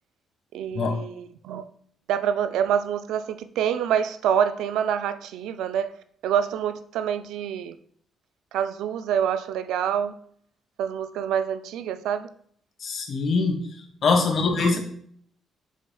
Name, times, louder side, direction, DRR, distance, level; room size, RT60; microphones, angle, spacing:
voice 1, 0.5-1.7 2.1-5.9 6.2-7.8 8.5-10.2 10.8-12.3 14.6-14.8, right 8 dB, 85° right, 0.4 m, -26 dB
voice 2, 12.8-13.6 14.0-14.8, left 4 dB, 55° left, 1.4 m, -22 dB
7.5 x 6.4 x 2.3 m
cardioid pair, 90°, 0 cm